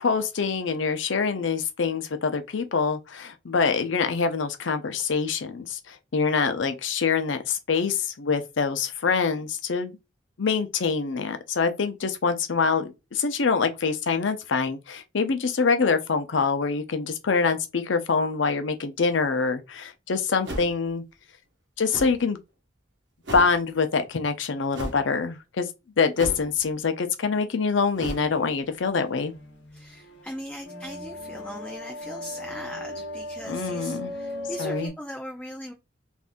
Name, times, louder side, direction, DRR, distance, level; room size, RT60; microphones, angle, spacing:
voice 1, 0.0-10.0 10.4-21.0 21.8-22.4 23.3-25.7 26.0-29.3 33.5-34.1 34.6-34.9, left 5 dB, 80° left, 0.6 m, -25 dB
sound 1, 20.4-20.9 21.9-22.2 23.2-23.6 24.7-25.0 26.2-26.6 27.9-28.3, right 1 dB, 70° right, 0.9 m, -34 dB
sound 2, 29.0-34.9, left 1 dB, 65° left, 1.1 m, -37 dB
voice 2, 29.7-35.7, equal, 5° left, 0.4 m, -39 dB
3.5 x 2.6 x 2.5 m
head